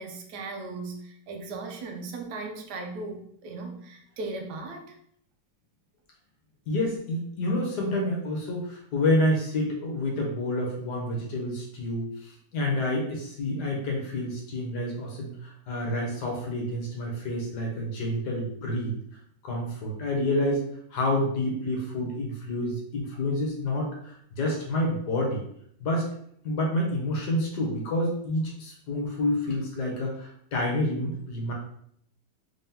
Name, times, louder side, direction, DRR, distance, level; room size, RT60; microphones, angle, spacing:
voice 1, 0.0-5.0, right 3 dB, 65° right, 3 dB, 1.1 m, -37 dB
voice 2, 6.7-19.0 19.4-20.6 20.9-25.4 25.8-26.1 26.4-31.5, left 1 dB, 65° left, -1 dB, 1.3 m, -28 dB
3.6 x 3.5 x 2.8 m, 0.68 s
omnidirectional pair, 2.1 m